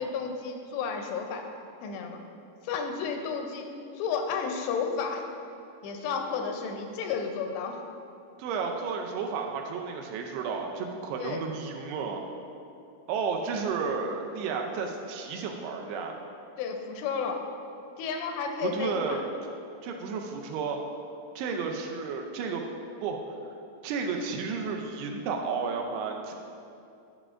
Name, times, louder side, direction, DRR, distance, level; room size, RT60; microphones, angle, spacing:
voice 1, 0.0-1.5 1.8-2.2 2.6-3.7 3.9-5.2 5.8-7.8 11.2-11.4 16.6-17.4 18.0-19.2, left 5 dB, 85° left, 3 dB, 2.8 m, -32 dB
voice 2, 8.4-12.2 13.1-16.1 18.6-19.3 19.8-20.8 21.4-22.6 23.0-23.2 23.8-26.3, right 5 dB, 80° right, 2 dB, 2.5 m, -32 dB
11.0 x 7.0 x 2.5 m, 2.6 s
omnidirectional pair, 4.9 m